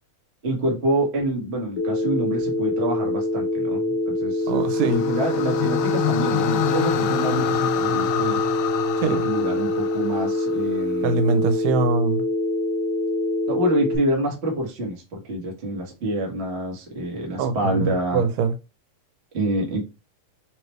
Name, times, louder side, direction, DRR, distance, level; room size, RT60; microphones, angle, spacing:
voice 1, 0.4-4.5 4.8-8.4 9.2-11.2 13.5-18.2 19.3-19.8, right 1 dB, 55° right, 0.7 m, -26 dB
Telephone, 1.8-14.0, left 2 dB, 65° left, 1.1 m, -25 dB
sound 1, 4.5-10.8, left 10 dB, 80° left, 1.7 m, -28 dB
voice 2, 4.5-5.0 9.0-9.3 11.0-12.2 17.4-18.5, right 5 dB, 85° right, 2.4 m, -23 dB
5.1 x 3.2 x 3.1 m
omnidirectional pair, 3.8 m